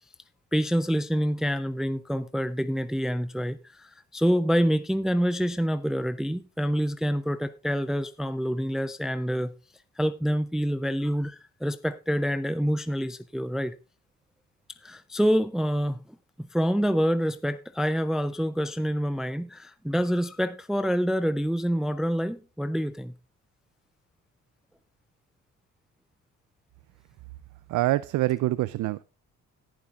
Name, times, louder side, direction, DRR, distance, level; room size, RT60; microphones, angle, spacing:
voice 1, 0.5-9.5 10.0-13.7 14.8-16.0 16.4-23.1, equal, ahead, 0.5 m, -27 dB
voice 2, 27.7-29.0, right 16 dB, 75° right, 0.5 m, -25 dB
18.5 x 7.3 x 2.4 m
cardioid pair, 90°, 30 cm